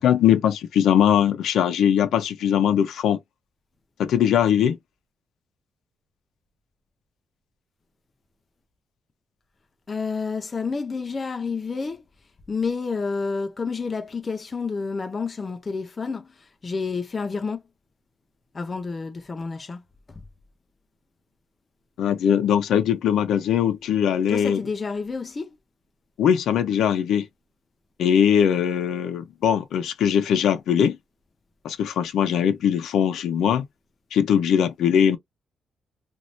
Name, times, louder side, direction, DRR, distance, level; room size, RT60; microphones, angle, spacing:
voice 1, 0.0-3.2 4.0-4.8 22.0-24.6 26.2-27.3 28.0-31.0 31.6-33.6 34.1-35.2, left 9 dB, 80° left, 0.8 m, -21 dB
voice 2, 9.9-12.0 12.5-17.6 18.5-19.8 20.1-20.2 24.3-25.6, left 4 dB, 25° left, 0.6 m, -29 dB
2.7 x 2.7 x 3.1 m
cardioid pair, 155°, 0 cm